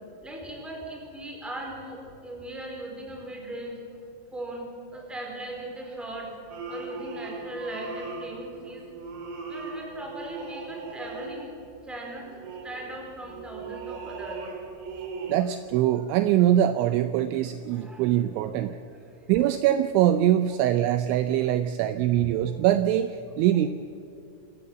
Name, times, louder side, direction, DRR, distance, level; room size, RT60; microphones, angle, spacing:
voice 1, 0.2-3.8 4.3-8.8 9.5-11.5 11.8-14.4 17.7-18.1 18.7-19.3, right 1 dB, ahead, 0 dB, 3.5 m, -39 dB
sound 1, 6.5-11.8 12.2-15.4, right 3 dB, 60° right, 4.2 m, -39 dB
voice 2, 15.3-18.8 19.3-23.7, right 12 dB, 80° right, 10 dB, 2.8 m, -23 dB
27.0 x 14.0 x 8.0 m, 2.7 s
omnidirectional pair, 5.8 m